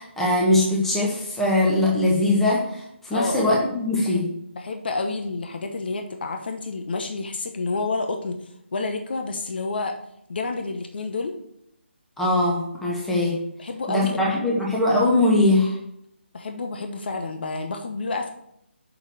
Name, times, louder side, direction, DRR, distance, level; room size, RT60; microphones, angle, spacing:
voice 1, 0.0-2.8 3.1-4.2 12.2-13.4 13.9-15.8, left 1 dB, 5° left, -4 dB, 1.4 m, -21 dB
voice 2, 3.1-3.6 4.0-4.2 4.5-10.0 10.3-11.4 13.6-14.7 16.3-18.3, left 3 dB, 55° left, 5 dB, 1.0 m, -29 dB
6.4 x 6.4 x 6.5 m, 0.76 s
figure-of-eight pair, 150°, 6 cm